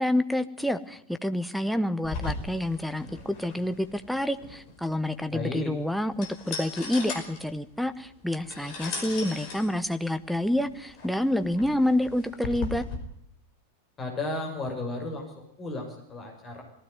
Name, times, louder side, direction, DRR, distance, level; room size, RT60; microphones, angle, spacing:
voice 1, 0.0-12.8, left 1 dB, ahead, 8 dB, 1.3 m, -28 dB
sound 1, 2.0-13.0, left 4 dB, 45° left, 5.1 m, -39 dB
voice 2, 5.3-5.7 14.0-16.6, left 2 dB, 20° left, 3 dB, 5.9 m, -34 dB
19.5 x 16.0 x 9.4 m, 0.72 s
figure-of-eight pair, 90°, 0 cm